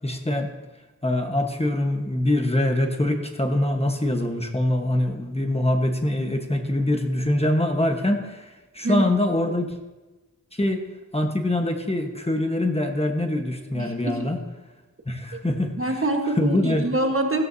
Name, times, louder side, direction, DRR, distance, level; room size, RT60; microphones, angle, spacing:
voice 1, 0.0-0.5 1.0-9.7 10.5-10.8 11.1-14.4 15.1-15.9 16.4-16.8, left 1 dB, 20° left, 3 dB, 1.2 m, -24 dB
voice 2, 13.7-14.3 15.3-15.4 15.8-17.4, right 2 dB, 40° right, 3 dB, 1.4 m, -25 dB
15.5 x 13.0 x 2.7 m, 1.1 s
wide cardioid pair, 85°, 32 cm